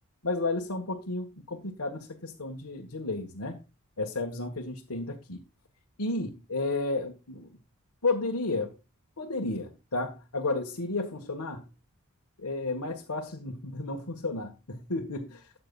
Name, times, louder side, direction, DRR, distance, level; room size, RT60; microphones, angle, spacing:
voice 1, 0.2-3.6 4.0-5.4 6.0-7.6 8.0-8.8 9.2-11.6 12.4-15.5, left 2 dB, 90° left, 1.6 m, -32 dB
13.5 x 8.7 x 2.5 m
head